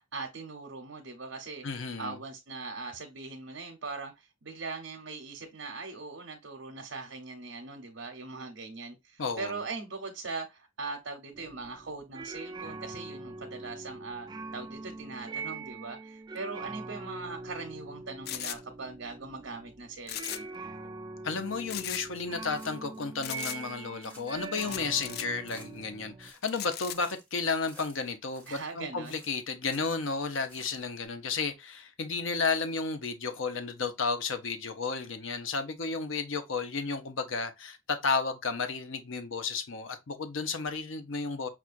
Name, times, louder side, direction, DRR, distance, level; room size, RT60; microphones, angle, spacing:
voice 1, 0.0-1.7 2.0-14.3 14.5-20.5 28.5-29.2, right 4 dB, 75° right, 0.8 m, -40 dB
voice 2, 1.6-2.2 9.2-9.5 21.2-41.5, left 4 dB, 75° left, 0.7 m, -33 dB
sound 1, 11.3-26.3, right 3 dB, 20° right, 0.4 m, -43 dB
sound 2, 18.3-18.6 20.0-20.6 20.8-20.9 21.7-22.0 23.2-23.6 24.6-25.3 26.4-27.0, left 12 dB, 55° left, 0.3 m, -37 dB
sound 3, 22.3-23.0 23.3-24.5 24.7-25.9 26.2-27.3 27.6-28.7 29.0-30.1 30.4-31.1, equal, 10° left, 1.2 m, -55 dB
5.9 x 2.4 x 2.4 m
head